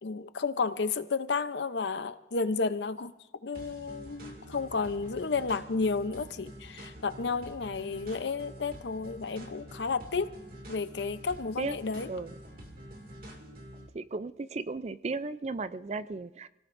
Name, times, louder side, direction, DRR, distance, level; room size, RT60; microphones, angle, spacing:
voice 1, 0.0-3.1 3.4-10.3 10.7-12.1, left 4 dB, 75° left, 12 dB, 0.7 m, -32 dB
sound 1, 3.5-13.9, equal, 50° right, 2.3 m, -47 dB
voice 2, 13.9-16.5, right 3 dB, 35° right, 14 dB, 0.4 m, -35 dB
27.5 x 17.5 x 2.6 m, 0.96 s
head